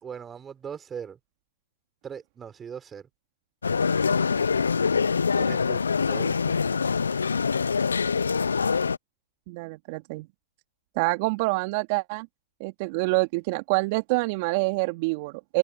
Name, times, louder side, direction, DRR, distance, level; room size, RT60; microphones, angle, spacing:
voice 1, 0.0-1.2 2.0-3.1 5.4-6.6, right 7 dB, 20° right, 5.1 m, -40 dB
sound 1, 3.6-9.0, left 5 dB, 85° left, 0.5 m, -24 dB
voice 2, 9.5-10.3 11.0-12.3 12.6-15.6, right 26 dB, 50° right, 2.7 m, -26 dB
hypercardioid pair, 110°, 0 cm